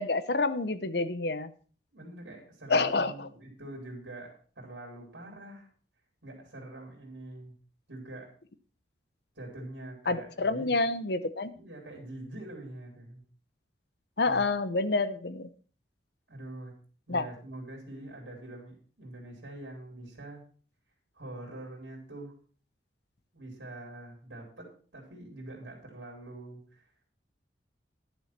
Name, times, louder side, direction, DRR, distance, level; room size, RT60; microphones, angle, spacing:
voice 1, 0.0-1.5 2.7-3.3 10.1-11.5 14.2-15.5 17.1-17.3, left 3 dB, 60° left, 13 dB, 0.8 m, -28 dB
voice 2, 1.9-5.7 6.2-7.5 7.9-8.3 9.4-10.9 11.5-13.2 14.2-14.4 16.3-16.7 17.1-20.4 21.1-22.3 23.3-26.8, right 1 dB, 70° right, 0 dB, 3.9 m, -44 dB
11.5 x 7.3 x 5.9 m, 0.42 s
head